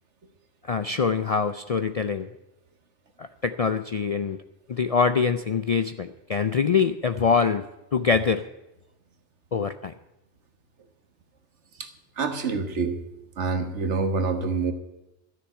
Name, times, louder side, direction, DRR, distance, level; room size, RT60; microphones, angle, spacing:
voice 1, 0.6-2.3 3.2-4.4 4.7-7.6 7.9-8.4 9.5-9.9, left 5 dB, 55° left, 10 dB, 0.4 m, -24 dB
voice 2, 12.2-13.0 13.4-14.7, right 4 dB, 80° right, 8 dB, 1.6 m, -26 dB
12.5 x 6.9 x 9.9 m, 0.95 s
omnidirectional pair, 1.2 m